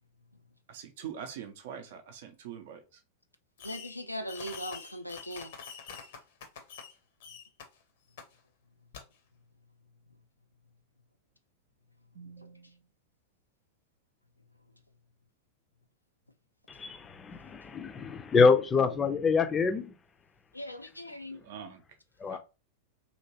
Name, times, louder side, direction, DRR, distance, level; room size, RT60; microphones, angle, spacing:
voice 1, 0.7-2.8 12.2-12.8 21.4-21.8 22.3-22.4, right 8 dB, 55° right, 0.6 m, -43 dB
voice 2, 3.6-5.5 20.5-21.4, equal, 90° left, 0.4 m, -39 dB
Fireworks, 3.6-4.0 4.3-6.9 7.2-7.6 8.2-8.3 8.9-9.0, left 6 dB, 55° left, 0.7 m, -45 dB
voice 3, 16.7-19.9 22.2-22.4, left 5 dB, 20° left, 0.5 m, -26 dB
2.9 x 2.9 x 2.8 m
figure-of-eight pair, 90°, 0 cm